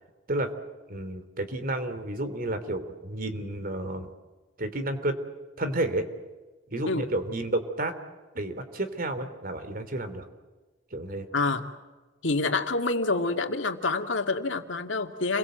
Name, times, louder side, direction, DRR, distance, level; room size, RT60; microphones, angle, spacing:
voice 1, 0.9-4.1 4.6-5.1 5.6-6.1 6.7-7.9 8.3-10.2 10.9-11.3, right 1 dB, 50° right, 10 dB, 3.2 m, -31 dB
voice 2, 11.3-11.6 12.2-15.4, left 3 dB, 75° left, 5 dB, 2.3 m, -27 dB
30.0 x 23.0 x 8.0 m, 1.3 s
head